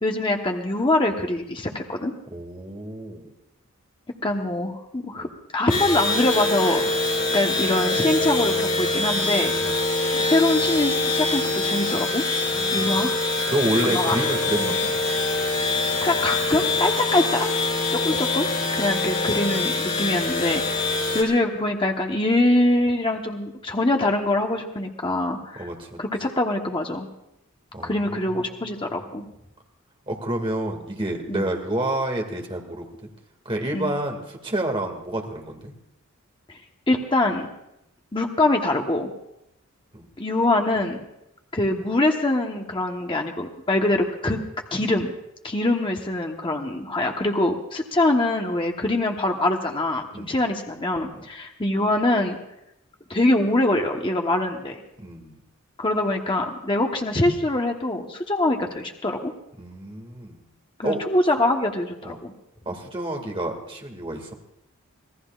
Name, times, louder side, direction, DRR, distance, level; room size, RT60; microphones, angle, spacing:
voice 1, 0.0-2.1 4.2-5.3 5.5-7.1 7.3-9.5 10.1-12.2 12.7-13.1 13.9-14.2 14.6-14.7 15.6-17.5 17.9-18.5 18.7-25.7 26.0-27.1 27.8-29.2 31.3-31.5 33.7-33.9 36.9-37.5 38.1-39.1 40.2-41.0 41.5-44.4 44.7-45.1 45.4-52.4 53.1-54.8 55.8-59.3 60.8-62.3, left 2 dB, 25° left, 2 dB, 1.1 m, -24 dB
voice 2, 2.3-3.3 5.2-5.3 9.6-9.8 12.5-13.1 13.5-14.9 17.9-18.1 18.8-18.9 25.6-26.0 27.7-28.2 29.0-29.1 30.1-33.1 33.5-35.7 39.9-40.1 50.1-50.4 51.1-51.3 55.0-55.4 59.6-60.4 60.8-61.0 62.0-62.2 62.7-64.3, right 1 dB, 25° right, 2 dB, 2.1 m, -29 dB
sound 1, 5.7-21.2, left 2 dB, 40° left, 3.0 m, -24 dB
26.0 x 18.0 x 2.5 m, 0.85 s
head